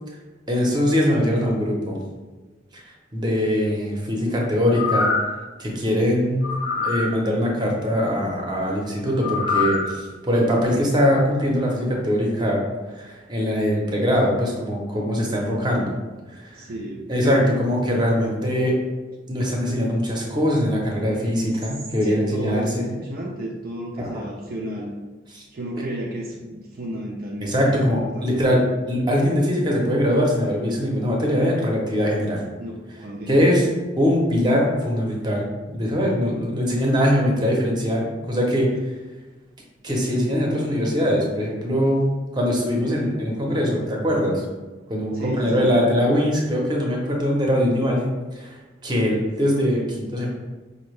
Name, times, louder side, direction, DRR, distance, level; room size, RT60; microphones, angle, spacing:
voice 1, 0.5-2.0 2.7-2.8 3.1-5.1 5.6-6.4 6.8-12.6 12.9-16.0 16.3-16.7 17.1-18.7 19.3-22.9 24.1-24.2 25.3-25.4 27.4-28.6 28.9-32.4 33.3-33.7 34.0-38.7 39.8-42.0 42.3-44.4 44.9-48.6 48.8-50.3, equal, 25° right, -1 dB, 0.7 m, -22 dB
sound 1, 4.6-5.4 6.4-7.1 9.2-9.9 10.4-10.5, left 4 dB, 55° left, 0.5 m, -24 dB
voice 2, 16.5-17.5 22.0-25.0 25.5-27.8 28.1-28.5 32.6-33.6 45.1-45.8, right 1 dB, 55° right, -2 dB, 0.4 m, -32 dB
5.2 x 2.1 x 3.2 m, 1.2 s
head